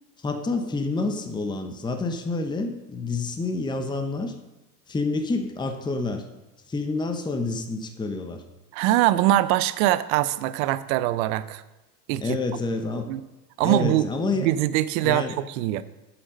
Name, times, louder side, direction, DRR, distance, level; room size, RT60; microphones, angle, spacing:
voice 1, 0.2-4.3 4.9-6.2 6.7-8.4 12.2-13.1 13.6-14.5 15.0-15.4, left 3 dB, 10° left, 6 dB, 0.9 m, -28 dB
voice 2, 8.7-11.6 12.1-12.4 13.1-13.2 13.6-15.8, right 14 dB, 55° right, 15 dB, 0.7 m, -23 dB
8.6 x 7.7 x 5.3 m, 1.0 s
hypercardioid pair, 100°, 49 cm